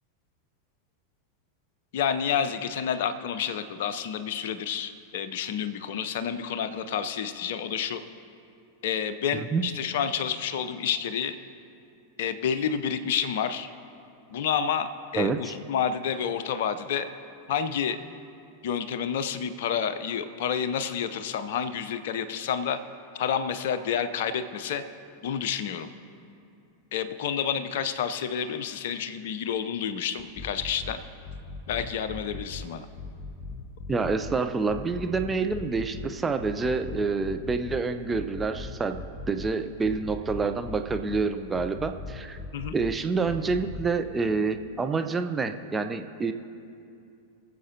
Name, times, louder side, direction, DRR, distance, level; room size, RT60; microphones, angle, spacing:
voice 1, 1.9-8.0 8.8-11.4 12.2-13.7 14.3-17.1 17.5-18.0 18.6-22.8 23.1-24.8 25.2-25.9 26.9-31.0 31.7-32.9 42.5-42.7, left 8 dB, 55° left, 11 dB, 0.6 m, -29 dB
voice 2, 15.2-15.5 33.9-42.4 42.7-46.3, right 4 dB, 15° right, 8 dB, 0.5 m, -28 dB
sound 1, 30.2-30.9 31.2-32.6 33.0-34.4 34.7-36.1 36.4-37.8 38.1-39.5 39.8-41.2 41.5-42.9 43.2-43.9, left 3 dB, 30° left, 1.0 m, -39 dB
23.0 x 7.6 x 2.7 m, 2.5 s
figure-of-eight pair, 90°, 0 cm